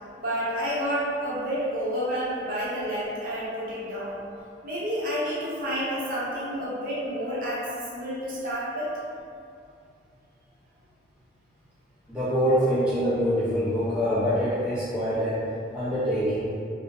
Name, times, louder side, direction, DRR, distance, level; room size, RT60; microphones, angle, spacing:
voice 1, 0.2-4.2 4.6-7.6 7.9-8.9, equal, 50° right, -8 dB, 0.6 m, -29 dB
voice 2, 12.1-15.4 15.7-16.5, equal, 5° right, -12 dB, 0.5 m, -25 dB
2.6 x 2.0 x 2.5 m, 2.4 s
head